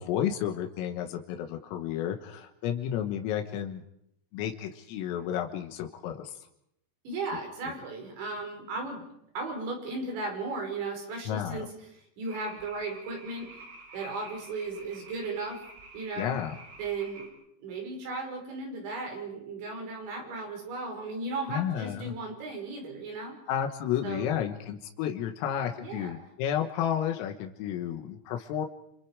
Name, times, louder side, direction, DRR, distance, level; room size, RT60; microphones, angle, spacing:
voice 1, 0.0-3.8 4.3-6.4 11.3-11.7 16.2-16.6 21.5-22.1 23.5-28.7, left 10 dB, 90° left, 4 dB, 4.1 m, -32 dB
voice 2, 7.1-9.0 9.3-13.5 13.9-15.6 15.9-16.4 16.8-17.3 17.6-23.4 24.0-24.4 25.8-26.3, right 3 dB, 60° right, 2 dB, 7.6 m, -36 dB
sound 1, 12.3-17.3, right 2 dB, 85° right, 9.4 m, -49 dB
28.5 x 27.5 x 4.9 m, 0.75 s
omnidirectional pair, 5.9 m